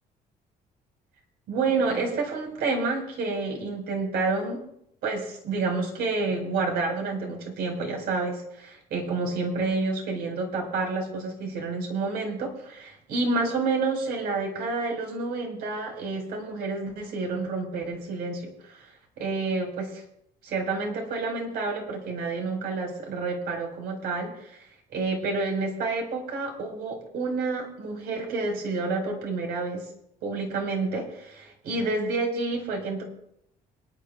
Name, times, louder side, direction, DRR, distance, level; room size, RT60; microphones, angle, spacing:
voice 1, 1.5-4.6 5.0-20.0 20.4-24.6 24.9-29.8 30.2-33.0, right 3 dB, 70° right, 1 dB, 4.4 m, -29 dB
27.0 x 11.0 x 2.3 m, 0.74 s
cardioid pair, 110°, 17 cm